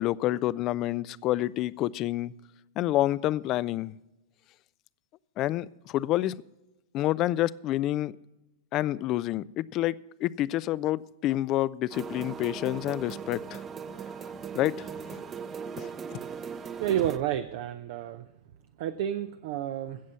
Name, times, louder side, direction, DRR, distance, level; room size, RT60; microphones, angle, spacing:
voice 1, 0.0-2.3 2.8-4.0 5.4-6.3 6.9-8.1 8.7-10.0 10.2-13.6 14.5-15.2 15.8-15.9, left 15 dB, 40° left, 21 dB, 0.4 m, -28 dB
sound 1, 11.9-17.2, right 6 dB, 25° right, 0.8 m, -39 dB
voice 2, 16.8-18.3 18.8-20.0, right 11 dB, 55° right, 10 dB, 0.5 m, -30 dB
16.0 x 7.4 x 5.5 m, 0.98 s
figure-of-eight pair, 95°, 0 cm